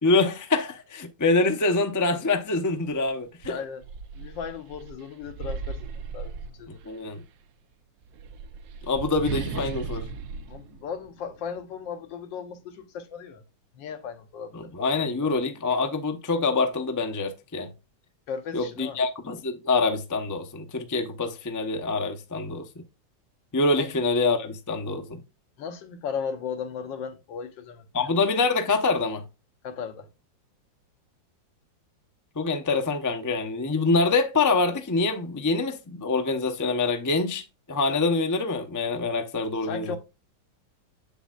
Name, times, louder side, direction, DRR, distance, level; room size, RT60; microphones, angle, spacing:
voice 1, 0.0-3.6 6.8-7.2 8.9-10.1 14.5-17.7 18.5-22.7 23.5-25.2 27.9-29.2 32.4-37.4 37.7-40.0, left 3 dB, 30° left, 0.3 m, -25 dB
sound 1, 2.9-3.0 3.4-7.0 8.0-11.6, right 4 dB, 80° right, 1.4 m, -37 dB
voice 2, 3.5-3.9 4.1-6.8 10.5-13.4 13.7-15.3 18.3-19.0 23.8-23.9 25.6-27.9 29.6-30.1 39.6-40.0, left 6 dB, 80° left, 1.7 m, -36 dB
7.5 x 6.8 x 2.3 m
omnidirectional pair, 2.0 m